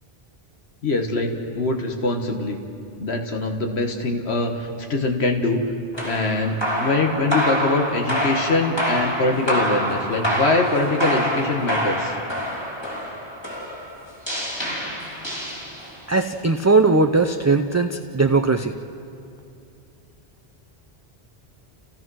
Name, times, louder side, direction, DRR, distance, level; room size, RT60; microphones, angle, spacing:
voice 1, 0.8-2.6 3.0-5.6 6.0-12.2, left 2 dB, 85° left, 3 dB, 1.7 m, -23 dB
sound 1, 5.9-16.1, equal, 25° left, 3.1 m, -26 dB
voice 2, 16.1-18.7, right 3 dB, 20° right, 5 dB, 0.4 m, -19 dB
29.5 x 16.5 x 6.2 m, 2.6 s
omnidirectional pair, 1.1 m